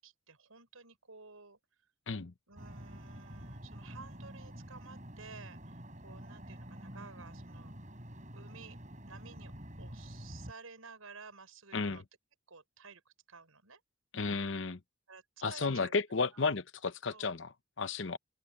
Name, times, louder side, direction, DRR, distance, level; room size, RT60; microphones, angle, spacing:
voice 1, 0.0-1.6 2.5-7.7 8.3-8.8 9.1-9.5 9.8-12.0 12.5-13.8 15.1-15.9 16.3-16.6 17.1-17.3, right 4 dB, 90° right, 6.8 m, -53 dB
sound 1, 2.6-10.5, equal, 35° right, 7.9 m, -48 dB
voice 2, 11.7-12.0 14.1-14.8 15.4-18.2, left 4 dB, 60° left, 0.9 m, -33 dB
open air
head